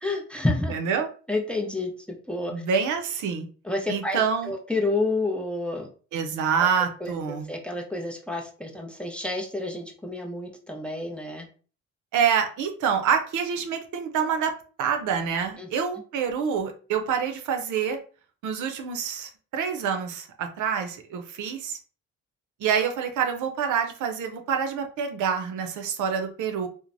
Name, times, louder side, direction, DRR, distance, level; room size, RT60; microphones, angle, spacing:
voice 1, 0.0-0.7 1.3-2.6 3.6-5.9 6.6-6.7 7.0-7.1 7.5-11.5 15.6-15.7, left 2 dB, 5° left, 2 dB, 0.6 m, -29 dB
voice 2, 0.7-1.1 2.5-3.5 3.9-4.5 6.1-7.5 12.1-14.5 14.8-18.0 18.4-21.8 22.6-26.7, right 7 dB, 75° right, 5 dB, 0.6 m, -26 dB
3.1 x 2.1 x 2.5 m, 0.40 s
cardioid pair, 90°, 30 cm